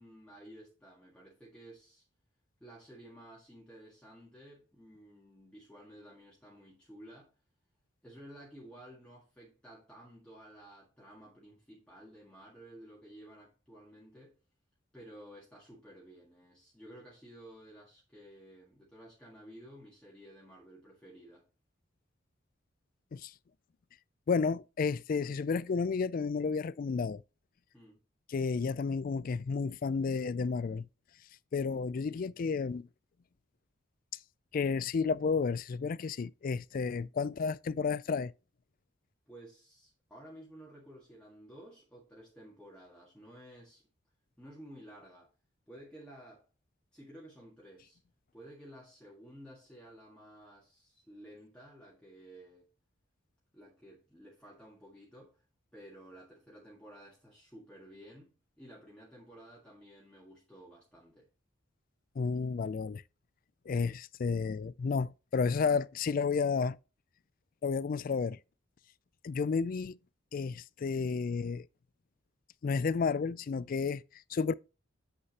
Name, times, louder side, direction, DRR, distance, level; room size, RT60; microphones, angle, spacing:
voice 1, 0.0-2.0 2.6-7.3 8.0-14.4 14.9-21.4 27.7-28.0 39.3-43.8 44.4-45.3 45.7-46.4 46.9-48.0 48.3-52.7 53.5-55.4 55.7-61.3, right 1 dB, 5° left, 1.7 m, -53 dB
voice 2, 24.3-27.2 28.3-30.9 31.5-32.9 34.5-38.3 62.2-63.0 63.7-66.8 67.6-68.4 69.2-70.0 70.3-71.7 72.6-74.0 74.3-74.5, left 5 dB, 45° left, 0.3 m, -31 dB
8.2 x 6.4 x 2.9 m
head